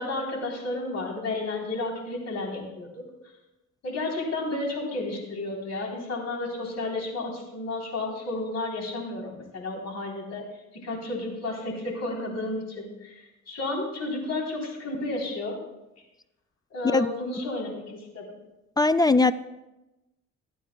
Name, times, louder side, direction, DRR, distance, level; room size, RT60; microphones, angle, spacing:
voice 1, 0.0-3.0 3.8-10.5 10.7-15.6 16.7-18.4, left 2 dB, 60° left, 0 dB, 3.6 m, -32 dB
voice 2, 18.8-19.3, left 3 dB, 15° left, 13 dB, 0.3 m, -19 dB
23.0 x 9.2 x 2.3 m, 0.98 s
cardioid pair, 90°, 30 cm